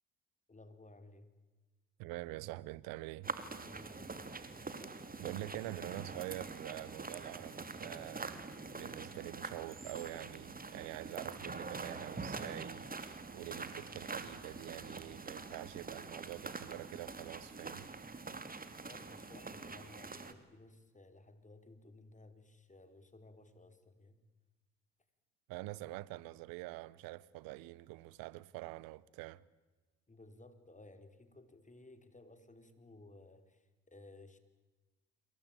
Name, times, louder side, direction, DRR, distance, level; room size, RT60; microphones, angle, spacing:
voice 1, 0.5-1.3 3.6-4.6 18.8-24.2 30.1-34.4, left 2 dB, 20° left, 4.5 m, -57 dB
voice 2, 2.0-3.3 5.1-8.4 8.7-17.9 25.5-29.4, right 18 dB, 80° right, 1.0 m, -46 dB
sound 1, 3.2-20.3, right 3 dB, 25° right, 3.1 m, -45 dB
27.5 x 24.0 x 9.0 m
supercardioid pair, 60°, 33 cm